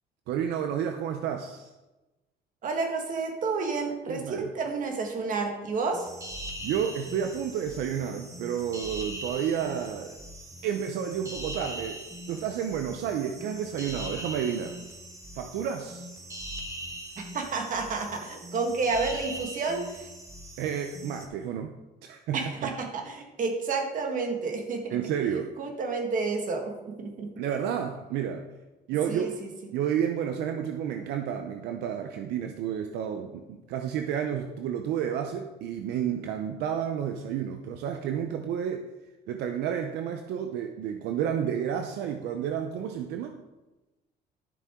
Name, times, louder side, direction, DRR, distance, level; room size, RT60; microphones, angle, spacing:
voice 1, 0.3-1.7 4.1-4.5 6.6-10.2 10.6-14.7 15.4-16.1 20.6-21.7 22.0-22.7 24.9-25.5 27.4-28.5 28.9-29.3 29.7-38.9 39.3-43.4, right 8 dB, 80° right, 6 dB, 0.7 m, -31 dB
voice 2, 2.6-6.1 17.3-20.1 22.3-25.0 25.6-27.3 29.1-29.5, right 4 dB, 50° right, 3 dB, 1.8 m, -30 dB
sound 1, 5.9-21.3, right 1 dB, 20° right, 1.3 m, -41 dB
11.5 x 6.9 x 3.7 m, 1.1 s
cardioid pair, 110°, 17 cm